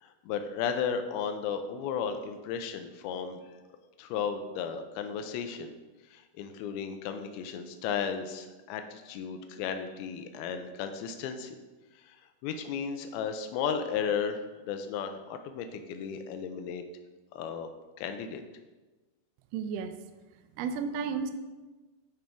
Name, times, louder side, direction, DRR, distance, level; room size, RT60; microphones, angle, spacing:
voice 1, 0.0-3.4 4.0-5.7 6.1-11.6 12.0-12.2 12.4-16.8 17.3-17.7 18.0-18.4, left 7 dB, 85° left, 7 dB, 2.3 m, -34 dB
voice 2, 19.5-20.0 20.6-21.3, right 6 dB, 80° right, 9 dB, 2.3 m, -32 dB
11.5 x 5.3 x 3.4 m, 1.2 s
omnidirectional pair, 4.9 m